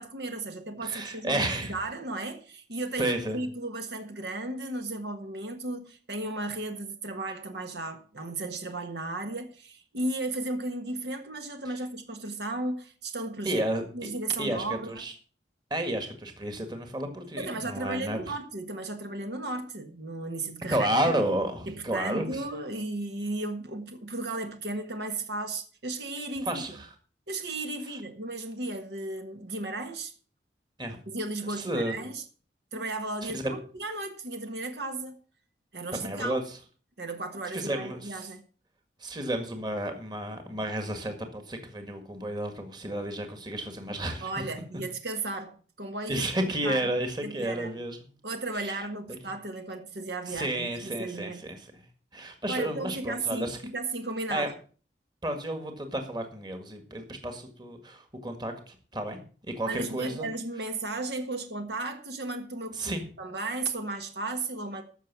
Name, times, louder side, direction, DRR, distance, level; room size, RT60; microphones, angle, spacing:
voice 1, 0.0-1.4 1.7-13.6 13.9-15.0 17.4-21.0 21.7-26.6 27.3-30.1 31.1-32.2 32.7-35.2 35.7-36.4 37.0-38.4 44.2-46.9 47.2-47.8 48.2-51.5 52.5-54.5 59.7-64.8, right 2 dB, 70° right, 1.5 m, -35 dB
voice 2, 0.8-1.8 3.0-3.4 13.4-13.8 14.4-15.1 15.7-18.2 20.7-22.4 26.4-26.9 30.8-31.0 31.6-32.0 33.2-33.5 35.9-36.4 37.5-38.2 39.0-44.4 46.1-48.0 48.5-48.8 50.3-51.7 52.1-53.6 54.3-54.5 55.2-60.3 62.7-63.0, right 1 dB, 25° right, 1.8 m, -31 dB
13.5 x 6.5 x 6.1 m
head